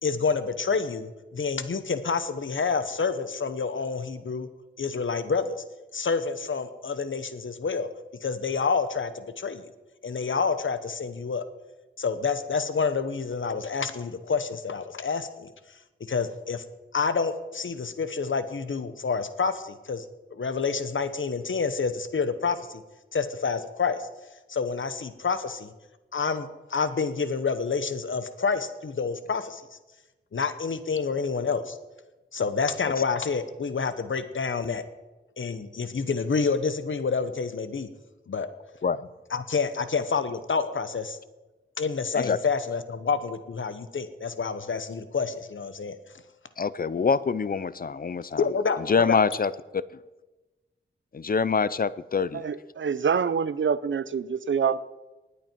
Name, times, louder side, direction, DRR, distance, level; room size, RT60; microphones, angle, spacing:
voice 1, 0.0-4.5 4.8-5.6 5.9-7.9 8.2-9.7 10.0-11.4 12.0-15.5 16.1-16.6 16.9-20.0 20.3-22.8 23.1-24.1 24.5-25.7 26.1-29.8 30.3-31.8 32.3-34.8 35.4-37.9 38.3-38.5 39.3-41.2 41.8-45.9 48.4-49.2, left 5 dB, 70° left, 1.0 m, -28 dB
voice 2, 46.6-48.5 48.9-49.8 51.1-52.4, left 5 dB, 45° left, 0.5 m, -25 dB
voice 3, 52.3-54.8, right 6 dB, 65° right, 0.5 m, -26 dB
19.5 x 8.5 x 4.6 m
wide cardioid pair, 80°, 21 cm